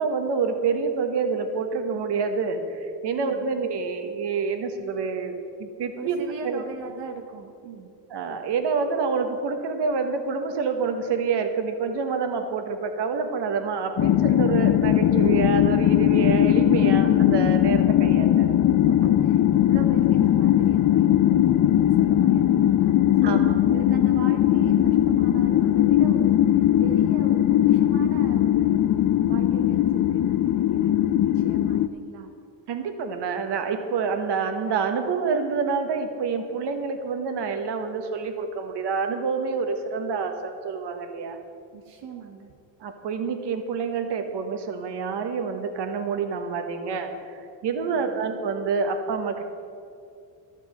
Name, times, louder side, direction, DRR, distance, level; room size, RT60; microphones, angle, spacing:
voice 1, 0.0-6.2 6.4-6.6 8.1-18.6 23.2-23.8 32.7-41.4 42.8-49.5, right 5 dB, 60° right, 6 dB, 1.5 m, -27 dB
voice 2, 3.2-3.5 6.0-7.9 18.9-21.4 21.7-22.9 23.2-23.4 23.6-28.9 29.3-30.9 31.2-32.3 41.7-42.5 47.8-48.2, right 6 dB, 85° right, 3 dB, 1.2 m, -40 dB
sound 1, 14.0-31.9, left 11 dB, 45° left, 0.6 m, -19 dB
12.5 x 8.2 x 7.7 m, 2.5 s
cardioid pair, 85°, 45 cm